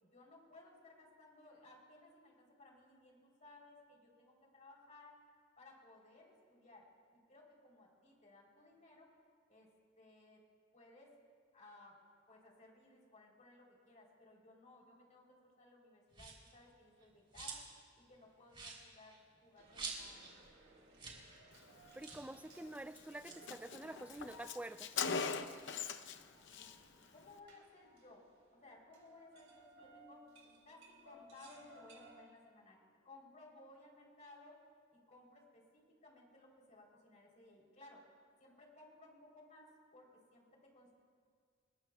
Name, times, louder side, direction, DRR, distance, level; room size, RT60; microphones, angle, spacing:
voice 1, 0.0-5.2 5.6-6.9 7.1-9.1 9.5-9.7 10.0-10.4 10.7-11.1 11.5-12.0 12.3-17.7 18.0-20.3 26.5-26.7 27.1-28.2 28.5-30.2 30.7-32.8 33.0-34.6 34.9-38.0 38.4-40.9, left 2 dB, 40° left, -2 dB, 3.6 m, -60 dB
sound 1, 16.1-16.5 17.0-17.8 18.1-18.2 18.5-20.4 20.6-20.7 20.9-21.3 21.5-21.6 22.0-22.3 23.1-24.8 25.2-26.7, right 4 dB, 30° right, 3.4 m, -50 dB
sound 2, 19.6-32.1, right 1 dB, 70° right, 4.2 m, -62 dB
voice 2, 22.0-24.9, right 1 dB, 5° right, 13 dB, 0.4 m, -48 dB
Car, 22.5-22.7 23.0-23.1 23.3-26.2 26.5-26.7, left 5 dB, 65° left, 0.7 m, -40 dB
29.0 x 20.5 x 2.3 m, 2.1 s
head